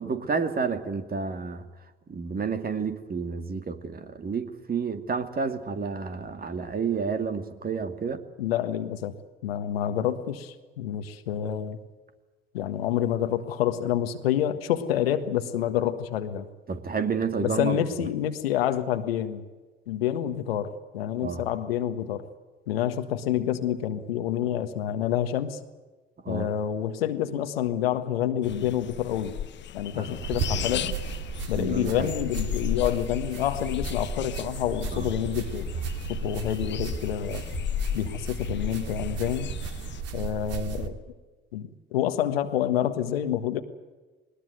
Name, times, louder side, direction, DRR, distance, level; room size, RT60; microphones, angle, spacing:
voice 1, 0.0-1.6 2.1-8.2 16.7-17.8 21.2-21.4 26.2-26.5 29.9-30.1 31.6-32.1 34.9-35.1, right 5 dB, 30° right, 8 dB, 2.4 m, -30 dB
voice 2, 8.4-9.1 9.4-11.8 12.5-16.5 17.4-19.5 19.9-22.2 22.7-25.6 26.3-29.3 29.7-31.0 31.5-35.6 36.1-37.4 37.9-39.5 40.1-41.0 41.5-43.6, left 10 dB, 75° left, 10 dB, 1.6 m, -28 dB
sound 1, 28.4-40.0, left 11 dB, 40° left, 0.9 m, -35 dB
sound 2, 30.2-40.9, right 6 dB, 55° right, 2.6 m, -35 dB
20.5 x 20.0 x 9.3 m, 1.2 s
figure-of-eight pair, 60°, 30 cm